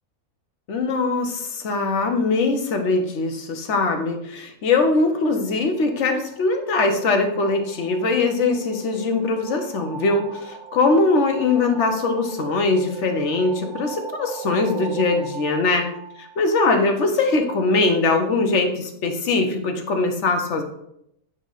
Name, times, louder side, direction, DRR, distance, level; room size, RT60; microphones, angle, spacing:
voice 1, 0.7-15.9 16.2-20.6, left 3 dB, 60° left, 5 dB, 1.1 m, -21 dB
sound 1, 5.5-17.1, right 6 dB, 70° right, 0.9 m, -39 dB
8.7 x 3.1 x 4.0 m, 0.76 s
omnidirectional pair, 1.5 m